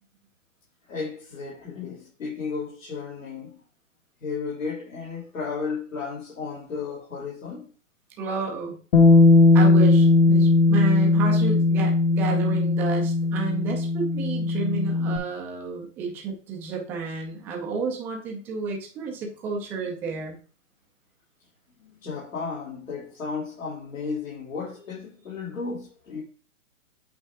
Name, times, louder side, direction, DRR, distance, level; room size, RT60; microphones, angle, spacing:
voice 1, 0.9-3.6 4.2-7.7 21.8-26.2, left 5 dB, 80° left, 3.1 m, -34 dB
voice 2, 8.2-8.7 9.5-20.4, right 5 dB, 5° right, 0.5 m, -31 dB
Bass guitar, 8.9-15.2, left 3 dB, 55° left, 1.4 m, -18 dB
8.3 x 4.5 x 3.5 m
hypercardioid pair, 150°, 39 cm